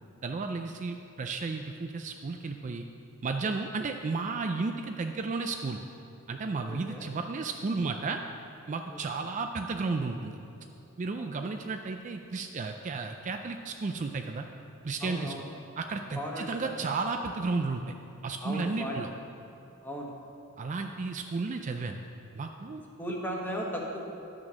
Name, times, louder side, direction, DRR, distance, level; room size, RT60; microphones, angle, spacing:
voice 1, 0.2-2.9 3.2-5.8 6.3-8.2 8.7-10.4 11.0-14.4 14.8-15.3 15.8-17.9 18.2-19.1 20.6-22.0 22.3-22.8, right 3 dB, 35° right, 5 dB, 0.4 m, -33 dB
voice 2, 6.7-7.1 8.9-9.3 15.0-15.4 16.1-16.9 18.4-18.9 19.8-20.1 23.0-24.0, equal, 10° left, -1 dB, 1.2 m, -36 dB
11.0 x 6.0 x 6.3 m, 2.7 s
head